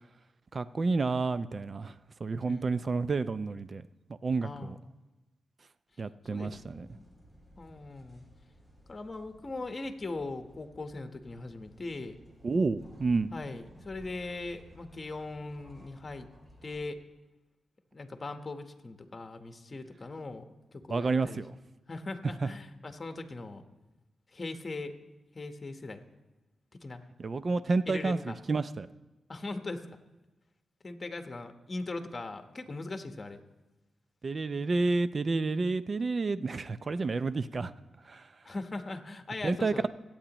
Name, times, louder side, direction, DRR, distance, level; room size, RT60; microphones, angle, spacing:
voice 1, 0.5-1.9 2.2-3.8 4.2-4.8 6.0-6.9 12.4-13.3 20.9-21.5 22.4-22.5 27.2-28.9 34.2-37.7 38.1-38.3 39.4-39.9, right 3 dB, 45° right, 14 dB, 0.5 m, -30 dB
voice 2, 2.4-2.8 4.4-4.8 6.3-6.5 6.9-7.1 7.6-8.2 8.9-12.1 13.3-16.3 16.6-17.0 17.9-20.5 20.7-21.4 21.9-23.6 24.3-24.9 25.3-26.1 26.8-27.0 27.9-28.4 29.3-30.0 30.8-33.4 38.4-39.9, left 2 dB, 35° left, 7 dB, 1.1 m, -40 dB
sound 1, 6.2-16.8, equal, 15° right, 3.3 m, -57 dB
23.0 x 8.8 x 3.0 m, 1.1 s
cardioid pair, 70°, 0 cm